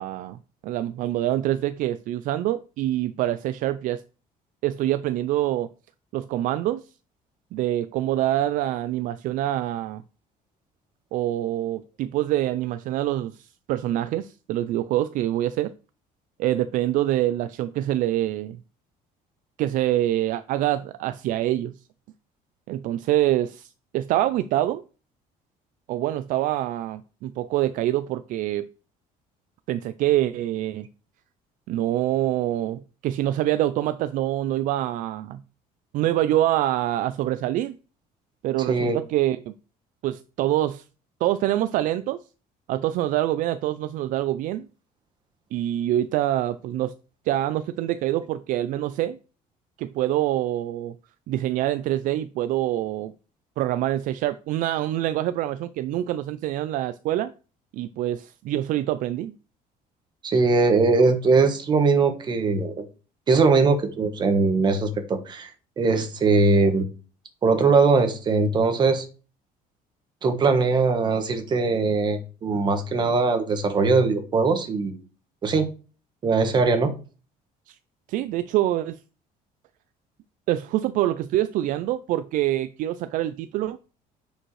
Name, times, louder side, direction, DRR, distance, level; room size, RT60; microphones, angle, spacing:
voice 1, 0.0-4.0 4.6-5.7 6.1-6.8 7.5-10.0 11.1-15.7 16.4-18.6 19.6-21.7 22.7-24.8 25.9-28.7 29.7-30.9 31.7-35.4 35.9-37.8 38.4-39.6 40.0-40.8 41.2-42.2 42.7-44.7 45.5-46.9 47.3-49.2 49.8-50.9 51.3-53.1 53.6-57.3 57.7-59.3 77.7-77.8 78.1-79.0 80.5-83.8, right 13 dB, 55° right, 0.4 m, -25 dB
voice 2, 38.7-39.0 60.2-62.7 63.3-65.5 65.8-66.9 67.4-69.0 70.2-75.0 75.4-75.7 76.2-76.9, right 4 dB, 30° right, 1.2 m, -21 dB
9.8 x 5.2 x 3.2 m
cardioid pair, 170°, 16 cm